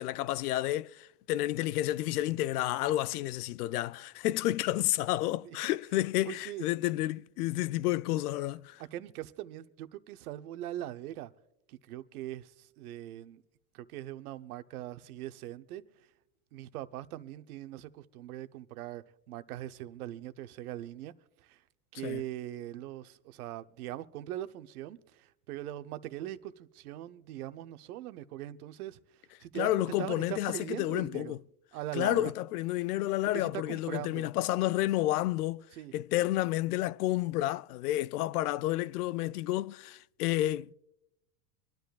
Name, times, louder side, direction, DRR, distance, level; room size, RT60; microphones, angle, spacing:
voice 1, 0.0-8.8 22.0-22.2 29.5-31.4 31.9-35.6 35.9-40.7, left 15 dB, 80° left, 0.5 m, -30 dB
voice 2, 6.2-6.7 8.9-11.3 11.7-13.4 13.7-15.8 16.5-21.1 21.5-21.6 21.9-29.0 29.4-31.3 31.7-32.3 33.3-34.3 35.8-35.9, right 13 dB, 75° right, 0.9 m, -41 dB
26.0 x 10.5 x 2.4 m
supercardioid pair, 135°, 45 cm